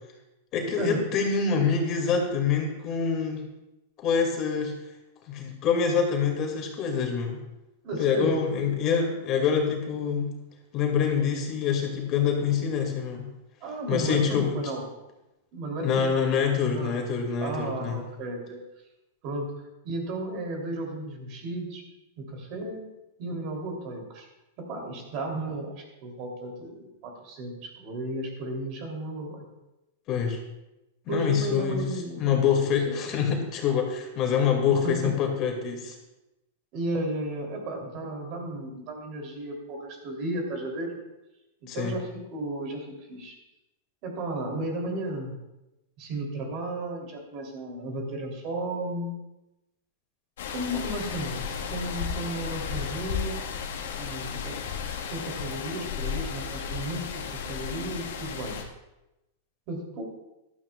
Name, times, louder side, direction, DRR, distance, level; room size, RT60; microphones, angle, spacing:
voice 1, 0.5-3.4 4.0-4.7 5.3-7.4 8.0-10.3 10.7-13.3 13.9-14.6 15.8-18.0 30.1-30.4 31.1-31.8 32.2-35.9 41.7-41.9, left 6 dB, 35° left, 2 dB, 2.3 m, -25 dB
voice 2, 7.8-8.4 13.6-14.8 15.5-16.3 16.6-17.0 17.4-18.6 19.2-19.5 19.8-21.8 22.2-22.9 23.2-24.3 24.6-29.5 31.1-32.4 32.8-33.0 34.7-35.1 36.7-41.0 41.6-43.3 44.0-45.3 46.0-49.1 50.5-53.4 54.0-54.6 54.9-58.6 59.7-60.0, right 1 dB, 45° right, 1 dB, 3.2 m, -34 dB
sound 1, 50.4-58.6, left 7 dB, 80° left, 1.6 m, -34 dB
15.0 x 12.5 x 2.4 m, 0.96 s
supercardioid pair, 145°, 0 cm